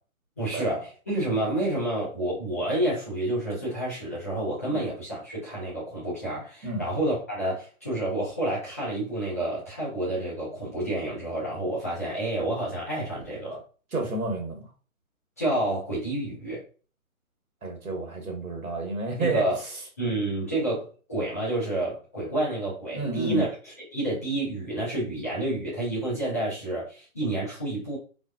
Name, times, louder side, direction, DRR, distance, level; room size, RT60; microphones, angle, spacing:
voice 1, 0.4-13.6 15.4-16.6 19.2-19.6 20.0-28.0, right 1 dB, 10° left, 0.4 m, -29 dB
voice 2, 13.9-14.7 17.6-19.4 22.9-23.4, right 2 dB, 85° right, 1.3 m, -30 dB
3.6 x 2.2 x 2.3 m
figure-of-eight pair, 135°, 42 cm